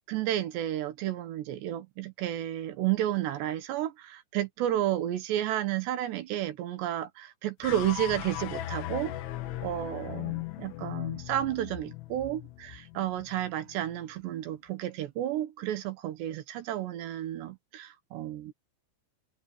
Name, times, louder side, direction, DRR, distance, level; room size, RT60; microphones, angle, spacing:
voice 1, 0.1-9.1 9.6-18.5, right 12 dB, 70° right, 3.3 m, -32 dB
sound 1, 7.6-14.0, left 14 dB, 85° left, 3.7 m, -38 dB
omnidirectional pair, 5.3 m